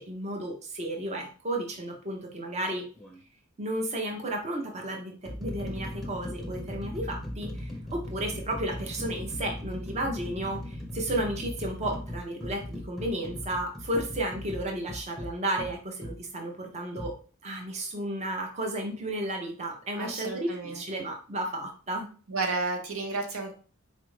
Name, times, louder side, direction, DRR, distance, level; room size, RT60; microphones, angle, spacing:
voice 1, 0.0-2.9 3.6-17.1 17.4-22.1, right 1 dB, 35° right, 2 dB, 0.7 m, -33 dB
sound 1, 3.0-3.2 4.1-4.2 4.9-16.2 17.0-17.1, left 1 dB, ahead, 0.7 m, -38 dB
voice 2, 20.0-21.0 22.3-23.5, right 3 dB, 80° right, 3 dB, 0.9 m, -32 dB
4.2 x 2.5 x 3.1 m, 0.40 s
head